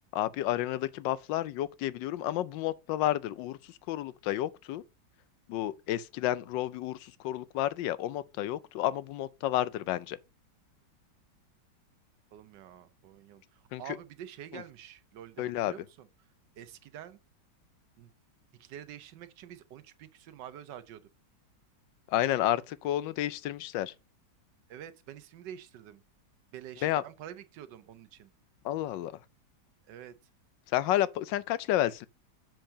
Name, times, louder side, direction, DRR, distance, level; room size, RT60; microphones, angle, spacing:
voice 1, 0.1-4.8 5.5-10.2 13.7-13.8 14.5-14.6 15.4-15.7 22.1-23.9 26.8-27.0 28.6-29.1 30.7-32.1, left 13 dB, 85° left, 1.3 m, -31 dB
voice 2, 12.3-16.1 16.6-17.2 18.0-18.1 18.6-21.1 24.7-26.0 26.5-28.3 29.9-30.1, right 10 dB, 75° right, 1.3 m, -47 dB
7.6 x 4.6 x 5.6 m
omnidirectional pair, 1.9 m